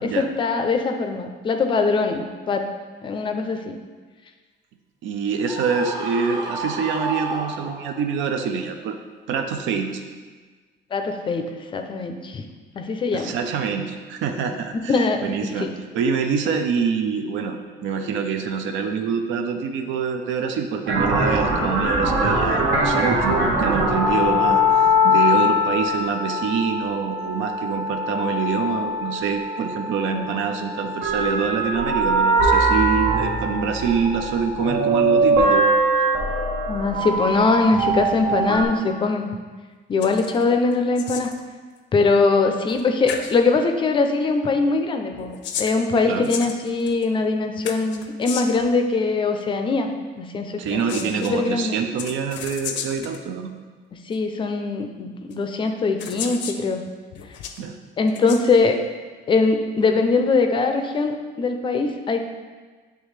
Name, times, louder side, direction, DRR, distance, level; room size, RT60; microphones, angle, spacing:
voice 1, 0.0-2.7 3.0-3.8 10.9-12.4 12.7-13.3 14.9-15.2 15.6-15.7 30.1-30.3 36.7-39.3 39.9-41.3 41.9-45.3 45.6-49.9 50.2-51.8 54.1-56.8 58.0-58.8 59.3-62.3, left 4 dB, 25° left, 6 dB, 0.4 m, -22 dB
voice 2, 5.0-9.0 9.3-10.0 13.1-15.7 15.9-35.7 46.1-46.3 50.6-53.5 57.6-57.8, right 6 dB, 90° right, 5 dB, 0.5 m, -25 dB
Screaming, 5.4-8.1, right 3 dB, 20° right, 0.6 m, -31 dB
sound 1, 20.9-38.6, equal, 75° right, 1.1 m, -22 dB
sound 2, 40.0-40.4 40.7-41.4 42.7-42.8 43.1-43.3 45.1-47.0 47.6-48.7 50.6-51.3 52.0-53.2 54.1-54.2 55.3-55.4 56.0-56.6 57.1-57.6 58.1-58.4, left 7 dB, 80° left, 0.5 m, -33 dB
8.9 x 3.4 x 3.2 m, 1.4 s
cardioid pair, 170°, 19 cm